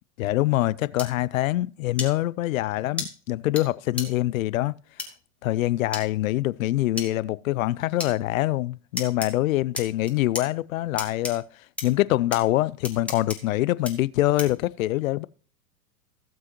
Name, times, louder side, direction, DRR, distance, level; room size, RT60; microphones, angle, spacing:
voice 1, 0.2-4.7 5.4-11.4 11.8-15.3, left 16 dB, 65° left, 0.6 m, -24 dB
sound 1, 1.0-1.1 2.0-2.1 3.0-3.1 3.6-3.7 4.0-4.1 5.0-5.1 5.9-6.0 7.0-7.1 8.0-8.1 9.0-9.3 9.7-10.4 11.0-11.3 11.8-11.9 12.3-12.4 12.8-13.4 13.8-13.9 14.4-14.6, left 2 dB, 5° left, 1.9 m, -32 dB
16.5 x 7.6 x 2.9 m
hypercardioid pair, 100°, 44 cm